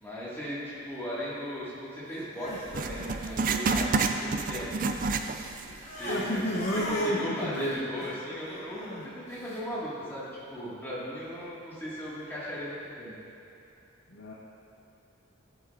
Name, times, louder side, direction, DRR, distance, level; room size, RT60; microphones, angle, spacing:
voice 1, 0.0-4.8 5.9-13.1, equal, 10° left, -9 dB, 1.9 m, -37 dB
Crying sobbing, 2.1-4.3 4.6-9.6, left 1 dB, 35° left, 1.2 m, -41 dB
Writing, 2.7-5.7 6.0-6.1 6.8-6.9, right 4 dB, 40° right, 0.3 m, -29 dB
voice 2, 6.1-7.9 14.1-14.3, equal, 70° left, -5 dB, 0.9 m, -30 dB
12.0 x 7.8 x 2.5 m, 2.8 s
head